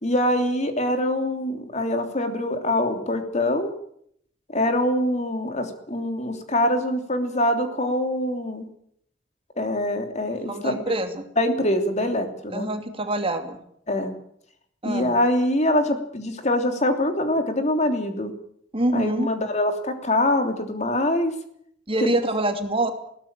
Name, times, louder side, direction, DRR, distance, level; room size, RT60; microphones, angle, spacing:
voice 1, 0.0-3.7 4.5-8.7 9.6-11.0 11.4-12.7 13.9-14.1 14.8-18.3 18.9-21.3 22.0-22.1, left 1 dB, 40° left, 6 dB, 3.1 m, -24 dB
voice 2, 10.5-11.2 12.5-13.6 14.8-15.1 18.7-19.3 21.9-22.9, right 1 dB, 30° right, 7 dB, 2.6 m, -25 dB
21.0 x 17.0 x 9.0 m, 0.69 s
head